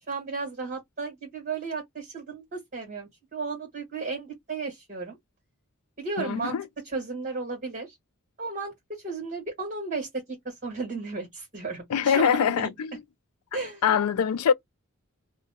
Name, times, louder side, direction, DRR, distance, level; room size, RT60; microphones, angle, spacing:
voice 1, 0.1-5.2 6.0-6.5 6.9-8.0 8.4-12.7 13.5-13.8, right 4 dB, 35° right, 1.5 m, -34 dB
voice 2, 6.2-6.6 11.9-13.0 13.8-14.5, left 7 dB, 80° left, 0.4 m, -23 dB
2.7 x 2.1 x 3.4 m
head